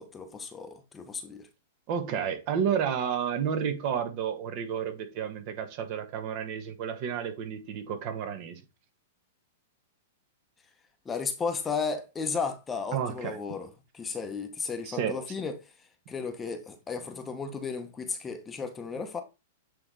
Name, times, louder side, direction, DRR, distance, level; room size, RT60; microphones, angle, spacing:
voice 1, 0.0-1.5 11.0-15.6 16.1-19.2, left 5 dB, 15° left, 1.0 m, -34 dB
voice 2, 1.9-8.6 12.9-13.4 14.8-15.2, right 8 dB, 45° right, 1.4 m, -31 dB
8.3 x 3.3 x 3.8 m
hypercardioid pair, 130°, 0 cm